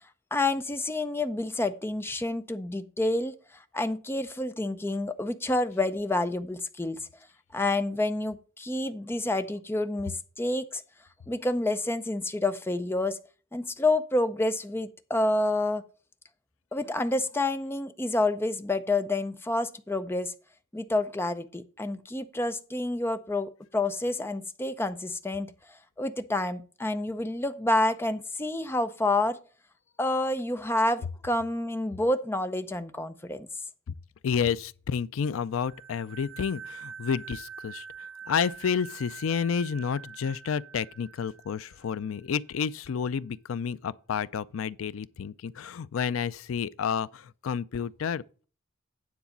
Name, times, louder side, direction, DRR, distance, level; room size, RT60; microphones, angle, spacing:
voice 1, 0.3-3.3 3.7-7.0 7.5-10.8 11.3-13.2 13.5-15.8 16.7-20.3 20.7-25.5 26.0-29.4 30.0-33.5, left 2 dB, 10° left, 0.5 m, -28 dB
voice 2, 34.2-37.8 38.3-48.2, left 7 dB, 80° left, 0.4 m, -30 dB
sound 1, 35.6-42.1, right 6 dB, 70° right, 2.0 m, -45 dB
9.6 x 4.0 x 7.2 m
head